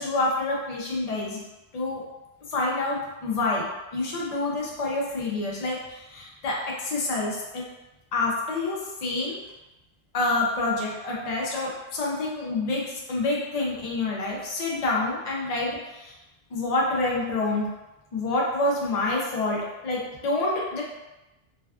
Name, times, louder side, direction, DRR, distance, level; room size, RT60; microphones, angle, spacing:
voice 1, 0.0-1.4 1.7-2.0 2.5-3.7 3.9-7.7 8.1-9.4 10.1-16.1 16.5-17.7 18.1-20.8, left 2 dB, 50° left, -3 dB, 0.5 m, -27 dB
2.4 x 2.2 x 2.3 m, 1.0 s
omnidirectional pair, 1.2 m